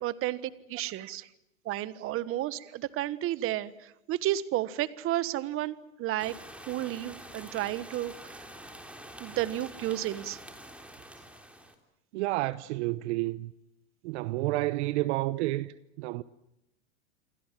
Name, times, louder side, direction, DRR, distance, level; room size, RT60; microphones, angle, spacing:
voice 1, 0.0-1.2 1.6-6.3 6.7-8.4 9.2-10.4, right 14 dB, 35° right, 1.4 m, -32 dB
sound 1, 6.2-11.7, right 1 dB, 5° right, 3.5 m, -47 dB
voice 2, 12.1-13.5 14.0-16.2, right 18 dB, 55° right, 1.0 m, -30 dB
28.5 x 23.5 x 7.6 m
supercardioid pair, 130°, 40 cm